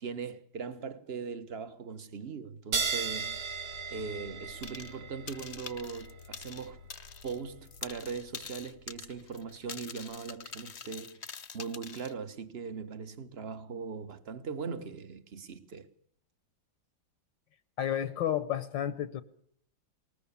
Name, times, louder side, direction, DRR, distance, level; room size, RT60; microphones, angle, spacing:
voice 1, 0.0-6.8 7.2-11.2 11.5-15.9, right 5 dB, 35° right, 1.4 m, -40 dB
sound 1, 2.7-9.7, right 5 dB, 85° right, 3.7 m, -38 dB
sound 2, 4.6-5.0 5.3-7.4 7.6-12.1, left 6 dB, 40° left, 1.1 m, -45 dB
voice 2, 17.8-19.2, left 10 dB, 70° left, 1.7 m, -31 dB
21.0 x 19.5 x 7.0 m
omnidirectional pair, 2.1 m